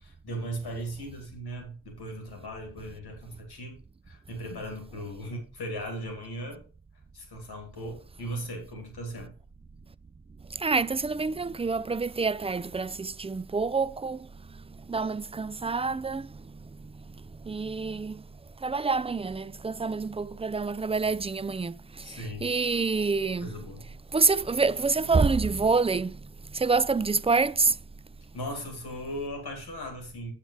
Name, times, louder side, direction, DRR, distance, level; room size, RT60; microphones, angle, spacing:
voice 1, 0.0-3.8 4.1-6.6 7.1-9.3 22.0-22.5 23.4-23.9 28.3-30.3, equal, 85° left, 2.5 m, -38 dB
voice 2, 10.5-18.3 18.6-23.5 24.1-26.2 26.5-27.8, right 4 dB, 15° right, 0.4 m, -27 dB
8.5 x 7.2 x 3.2 m
cardioid pair, 50°, 38 cm